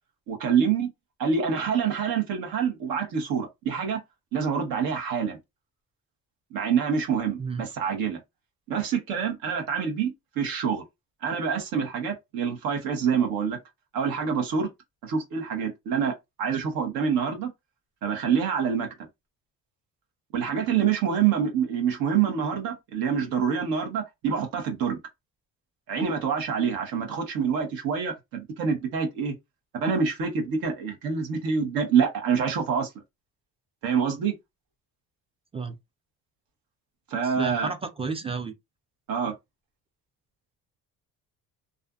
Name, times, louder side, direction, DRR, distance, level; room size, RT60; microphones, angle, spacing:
voice 1, 0.3-0.9 1.2-4.0 4.3-5.4 6.5-8.2 8.7-10.8 11.2-13.6 13.9-14.7 15.0-16.1 16.4-17.5 18.0-18.9 20.3-25.0 25.9-29.3 29.8-32.9 33.8-34.3 37.1-37.7 39.1-39.3, right 6 dB, 75° right, 1.0 m, -26 dB
voice 2, 37.2-38.5, right 4 dB, 15° right, 0.4 m, -32 dB
2.4 x 2.4 x 2.3 m
cardioid pair, 90°, 35 cm